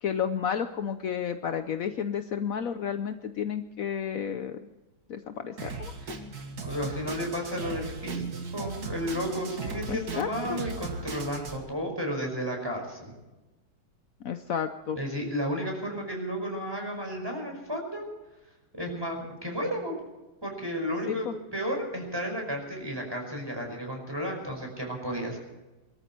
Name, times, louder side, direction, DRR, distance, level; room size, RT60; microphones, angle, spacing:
voice 1, 0.0-4.6 5.1-5.9 9.9-10.6 14.2-15.0 21.1-21.3, left 8 dB, 70° left, 9 dB, 0.8 m, -31 dB
Drum kit, 5.6-11.6, right 4 dB, 45° right, 2.2 m, -37 dB
voice 2, 6.6-8.2 8.5-13.1 15.0-18.1 18.7-20.0 20.4-21.3 21.5-25.4, equal, 10° right, 1 dB, 5.3 m, -33 dB
23.5 x 13.5 x 4.5 m, 1.1 s
omnidirectional pair, 2.4 m